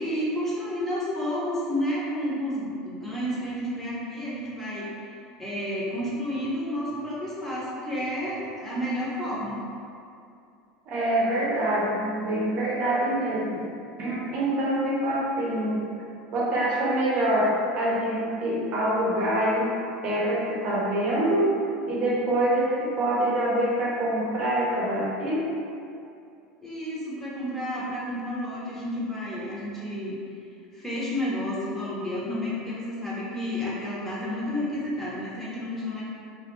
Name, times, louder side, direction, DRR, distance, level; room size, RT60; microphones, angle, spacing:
voice 1, 0.0-4.9 5.4-9.6 26.6-30.2 30.7-36.0, equal, 10° left, -8 dB, 0.7 m, -31 dB
voice 2, 10.9-13.6 14.0-15.8 16.3-19.7 20.0-21.6 21.9-25.5, right 1 dB, 50° right, -5 dB, 0.6 m, -25 dB
2.3 x 2.2 x 2.9 m, 2.5 s
supercardioid pair, 105°, 3 cm